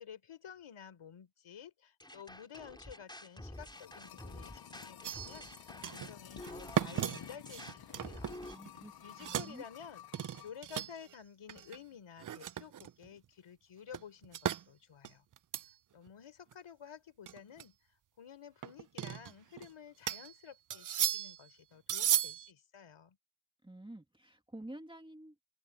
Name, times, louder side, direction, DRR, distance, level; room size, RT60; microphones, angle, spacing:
voice 1, 0.0-8.4 9.0-15.2 15.9-17.8 18.2-23.2, left 8 dB, 75° left, 4.2 m, -52 dB
sound 1, 2.0-8.5, left 1 dB, 10° left, 4.2 m, -49 dB
sound 2, 3.2-10.6 10.9-11.0, left 10 dB, 50° left, 0.7 m, -53 dB
sound 3, 5.0-5.5 5.8-6.1 6.4-8.8 9.1-9.6 10.1-11.1 11.5-11.8 12.2-13.1 13.9-14.6 15.0-15.7 16.1-16.2 16.5-16.6 17.3-17.6 18.6-19.7 20.1-20.3 20.7-21.5 21.9-22.5, right 10 dB, 40° right, 0.4 m, -36 dB
voice 2, 8.5-9.6 23.6-25.4, right 1 dB, 10° right, 2.3 m, -50 dB
open air
cardioid pair, 95°, 50 cm